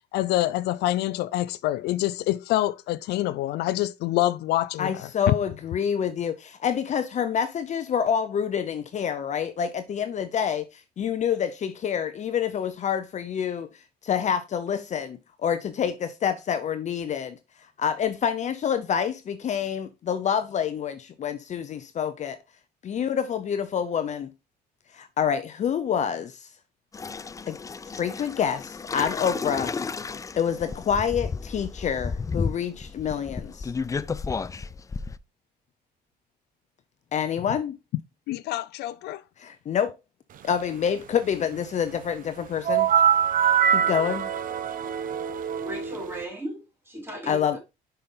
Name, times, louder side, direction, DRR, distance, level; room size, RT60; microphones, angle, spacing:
voice 1, 0.1-5.3 38.3-39.2, left 15 dB, 75° left, 0.4 m, -26 dB
voice 2, 4.8-13.7 14.0-17.4 17.8-22.4 22.8-24.3 24.9-26.4 27.5-27.6 27.9-29.7 30.4-33.7 37.1-37.8 39.4-39.9 40.4-42.9 43.7-44.3 47.3-47.6, left 8 dB, 45° left, 0.7 m, -27 dB
sound 1, 26.9-35.2, left 4 dB, 20° left, 0.4 m, -33 dB
sound 2, 42.6-46.2, right 8 dB, 55° right, 0.9 m, -23 dB
voice 3, 45.6-47.6, right 1 dB, 15° right, 4.0 m, -37 dB
6.8 x 5.6 x 3.8 m
cardioid pair, 110°, 17 cm